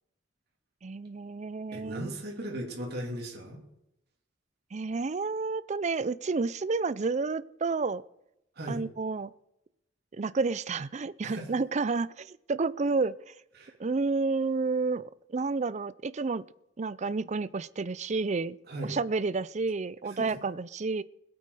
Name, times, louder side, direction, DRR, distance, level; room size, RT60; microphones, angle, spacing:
voice 1, 0.8-2.1 4.7-8.0 8.7-9.3 10.1-13.3 13.8-16.4 16.8-18.6 18.8-21.0, right 4 dB, 35° right, 18 dB, 0.5 m, -30 dB
voice 2, 1.7-3.6 8.5-8.8 11.2-11.5 13.5-13.7 18.7-19.0 20.2-20.4, right 1 dB, 55° right, -1 dB, 3.1 m, -37 dB
20.5 x 8.6 x 4.9 m, 0.83 s
head